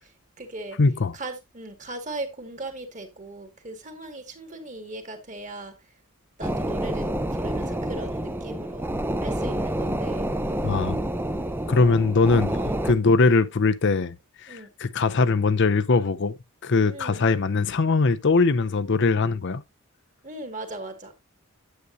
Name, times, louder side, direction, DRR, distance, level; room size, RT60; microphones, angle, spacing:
voice 1, 0.0-0.8 1.1-5.7 6.4-8.9 9.2-10.3 12.5-12.8 14.5-14.7 16.9-17.3 20.2-21.1, right 2 dB, 35° right, 1.9 m, -38 dB
voice 2, 0.8-1.1 10.6-11.0 11.7-12.6 12.8-14.2 14.4-16.3 16.6-19.6, left 4 dB, 55° left, 0.6 m, -21 dB
sound 1, 6.4-12.9, right 1 dB, 10° right, 0.6 m, -28 dB
9.6 x 8.2 x 2.6 m
head